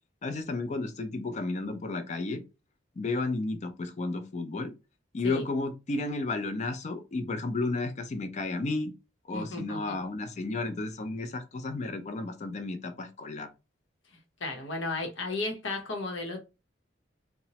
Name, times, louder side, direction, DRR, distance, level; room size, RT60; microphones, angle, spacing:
voice 1, 0.2-2.4 3.0-4.7 5.1-8.9 9.3-13.5, left 2 dB, 40° left, 0.4 m, -32 dB
voice 2, 9.3-10.0 14.4-16.4, left 2 dB, 90° left, 0.8 m, -34 dB
2.9 x 2.1 x 2.8 m
head